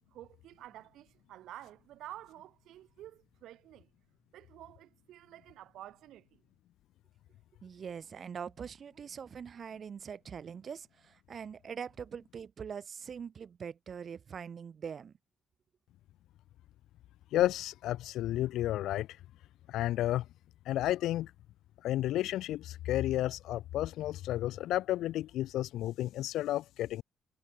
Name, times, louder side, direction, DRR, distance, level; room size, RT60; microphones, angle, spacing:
voice 1, 0.1-3.9 4.3-6.4, right 13 dB, 80° right, 3.9 m, -50 dB
voice 2, 7.6-15.1, right 7 dB, 50° right, 0.7 m, -43 dB
voice 3, 17.3-19.1 19.7-20.2 20.7-21.3 21.8-27.0, left 14 dB, 85° left, 0.3 m, -32 dB
cardioid pair, 90°, 0 cm